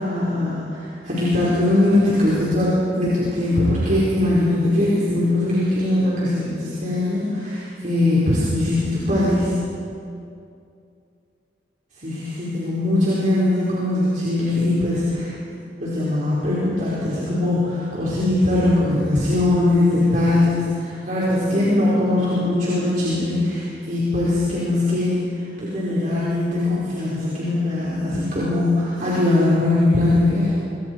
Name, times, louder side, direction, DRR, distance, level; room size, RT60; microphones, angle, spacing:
voice 1, 0.0-9.5 12.0-15.3 15.8-25.3 25.6-30.5, left 1 dB, 45° right, -8 dB, 5.0 m, -21 dB
27.0 x 25.0 x 4.8 m, 2.5 s
head